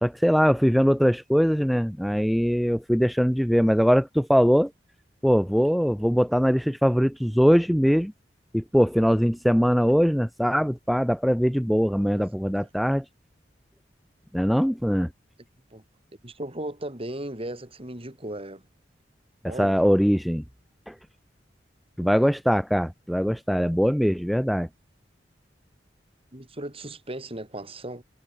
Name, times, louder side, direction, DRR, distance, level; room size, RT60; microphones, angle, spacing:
voice 1, 0.0-4.7 5.2-8.1 8.5-13.0 14.3-15.1 19.6-20.4 20.9-21.0 22.0-24.7, equal, ahead, 0.7 m, -21 dB
voice 2, 16.2-18.6 19.4-19.9 22.2-22.3 26.3-28.0, right 1 dB, 35° right, 5.0 m, -36 dB
head